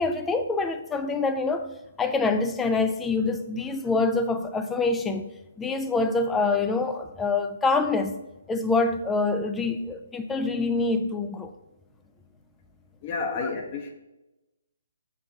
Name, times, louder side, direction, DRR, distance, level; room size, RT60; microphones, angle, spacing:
voice 1, 0.0-1.7 2.0-5.3 5.6-8.2 8.5-11.5 13.4-13.5, left 3 dB, 10° left, 0.4 m, -25 dB
voice 2, 13.0-13.9, left 4 dB, 35° left, 1.0 m, -30 dB
7.1 x 5.4 x 2.7 m
figure-of-eight pair, 135°, 0 cm